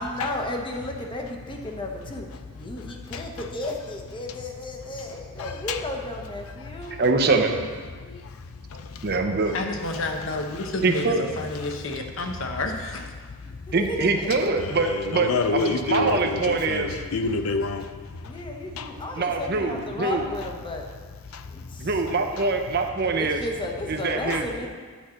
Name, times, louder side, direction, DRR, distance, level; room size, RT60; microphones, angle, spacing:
voice 1, 0.0-2.3 2.5-7.0 13.4-14.6 15.6-15.7 18.2-20.9 21.5-22.4 23.0-24.7, left 1 dB, 25° left, 2 dB, 1.0 m, -34 dB
voice 2, 5.4-5.8 8.0-8.4 8.7-9.1 14.6-17.9 18.2-18.3 18.8-18.9 21.3-21.5 22.4-22.5 24.3-24.4, left 3 dB, 80° left, 8 dB, 0.5 m, -28 dB
voice 3, 7.0-7.6 9.0-9.6 10.8-11.2 13.7-17.0 19.2-20.3 21.8-23.4 23.9-24.7, right 3 dB, 50° right, 5 dB, 0.7 m, -24 dB
voice 4, 9.5-13.1, left 2 dB, 65° left, 4 dB, 0.9 m, -30 dB
10.0 x 4.3 x 6.3 m, 1.5 s
head